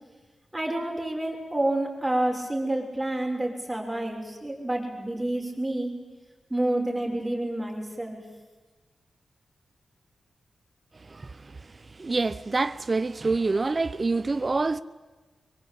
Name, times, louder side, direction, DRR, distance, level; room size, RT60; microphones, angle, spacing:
voice 1, 0.5-5.9 6.5-8.2, right 1 dB, 10° right, 6.7 m, -28 dB
voice 2, 12.0-14.8, right 3 dB, 35° right, 0.8 m, -26 dB
24.0 x 23.5 x 8.8 m
wide cardioid pair, 90°, 0 cm